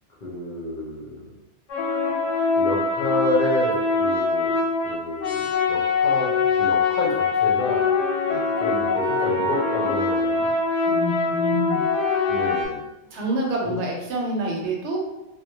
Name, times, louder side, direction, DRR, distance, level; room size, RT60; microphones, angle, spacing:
voice 1, 0.2-1.3 2.6-4.5 4.8-7.8 8.6-10.5 12.3-12.8 13.6-13.8, left 1 dB, 50° left, -5 dB, 0.7 m, -29 dB
sound 1, 1.7-12.7, left 4 dB, 85° left, 1.1 m, -23 dB
voice 2, 10.9-11.8 13.1-15.0, right 1 dB, 80° right, -1 dB, 0.9 m, -27 dB
2.2 x 2.1 x 2.8 m, 0.92 s
omnidirectional pair, 1.2 m